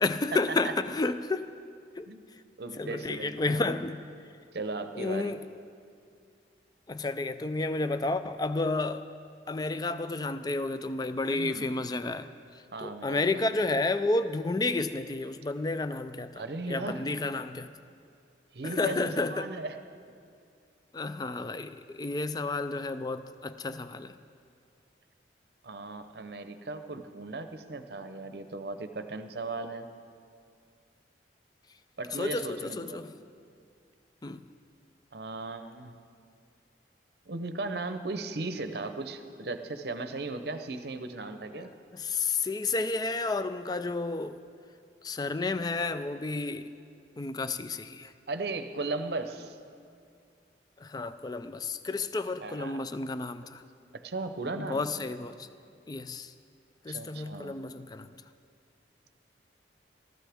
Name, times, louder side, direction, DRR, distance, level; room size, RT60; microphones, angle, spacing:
voice 1, 0.0-1.5 2.0-2.1 2.8-4.0 4.9-5.4 6.9-9.1 9.5-12.3 12.5-17.7 18.6-19.5 20.9-24.2 32.1-33.1 34.2-34.4 41.6-41.7 41.9-44.4 45.0-46.7 47.2-48.1 50.8-53.6 54.5-55.5 55.9-56.3 56.8-58.1, left 3 dB, 20° left, 11 dB, 0.3 m, -31 dB
voice 2, 2.6-3.8 4.5-5.4 11.3-11.7 12.7-13.3 16.3-17.1 18.5-19.8 25.6-29.9 32.0-33.0 35.1-36.0 37.3-41.7 48.3-49.6 52.4-52.8 53.9-54.9 56.9-57.6, right 3 dB, 60° right, 9 dB, 0.7 m, -37 dB
19.0 x 13.5 x 3.5 m, 2.4 s
head